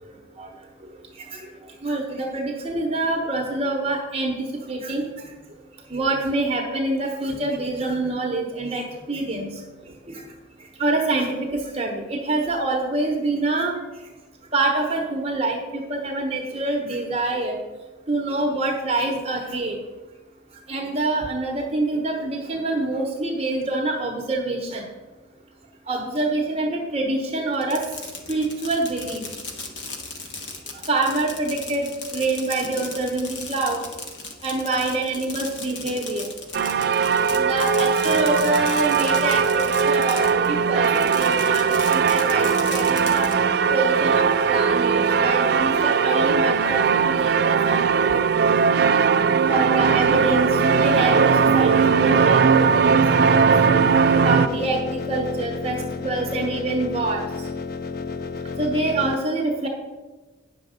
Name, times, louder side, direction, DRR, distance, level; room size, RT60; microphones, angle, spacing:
voice 1, 1.8-5.0 5.9-9.5 10.1-10.2 10.8-13.7 14.5-17.6 18.1-19.8 20.7-24.8 25.9-27.8 28.3-29.0 30.9-33.8 34.4-36.3 37.3-43.2 43.7-48.2 49.5-53.5 54.1-57.2 58.6-59.7, right 2 dB, 30° right, 1 dB, 1.0 m, -26 dB
Fireworks, 27.5-40.5 40.8-43.3, left 4 dB, 65° left, 1.2 m, -36 dB
sound 1, 36.5-54.5, right 6 dB, 55° right, 0.3 m, -19 dB
sound 2, 49.8-59.1, left 4 dB, 45° left, 0.3 m, -31 dB
9.4 x 6.4 x 5.0 m, 1.2 s
head